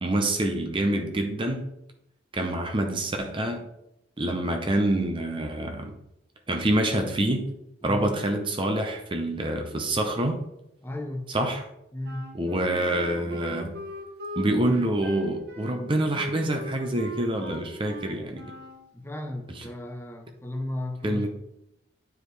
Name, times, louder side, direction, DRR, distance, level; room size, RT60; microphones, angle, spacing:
voice 1, 0.0-1.7 2.3-3.7 4.2-5.9 6.5-7.5 7.8-10.4 11.3-11.7 12.3-13.8 14.4-18.4 19.5-19.6 21.0-21.3, right 1 dB, 25° right, 3 dB, 0.7 m, -26 dB
voice 2, 7.8-8.1 10.8-11.4 11.9-12.4 18.9-21.3, left 1 dB, 10° left, 4 dB, 0.8 m, -34 dB
Wind instrument woodwind instrument, 12.0-18.9, right 1 dB, 55° right, 1.1 m, -39 dB
10.0 x 4.7 x 3.3 m, 0.82 s
head